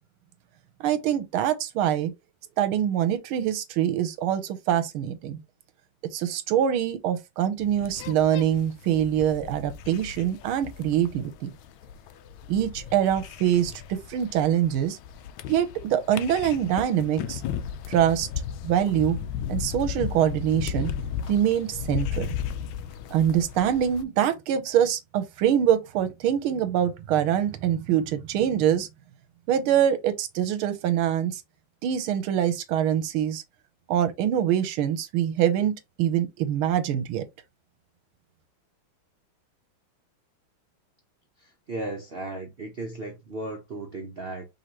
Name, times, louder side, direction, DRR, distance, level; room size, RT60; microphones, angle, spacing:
voice 1, 0.8-2.1 2.6-5.4 6.1-11.5 12.5-15.0 15.5-17.4 17.9-18.3 18.6-19.2 19.5-20.9 21.3-22.3 23.1-28.9 29.5-31.4 31.8-33.4 33.9-37.2, right 10 dB, 80° right, 1.6 m, -24 dB
sound 1, 7.6-24.0, left 9 dB, 75° left, 1.3 m, -35 dB
voice 2, 41.4-44.5, right 2 dB, 65° right, 0.6 m, -35 dB
5.4 x 3.2 x 2.9 m
omnidirectional pair, 2.3 m